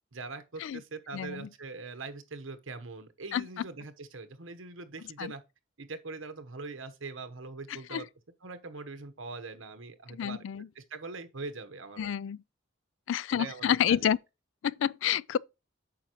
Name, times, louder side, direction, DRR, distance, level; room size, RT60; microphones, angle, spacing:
voice 1, 0.1-5.4 5.8-8.1 8.4-10.4 10.7-12.1 13.3-14.1, right 3 dB, 85° right, 1.1 m, -42 dB
voice 2, 1.1-1.5 3.3-3.4 5.2-5.3 7.9-8.0 10.1-10.7 12.0-12.4 13.1-14.2 14.6-15.4, left 9 dB, 70° left, 0.3 m, -29 dB
8.9 x 5.9 x 3.0 m
head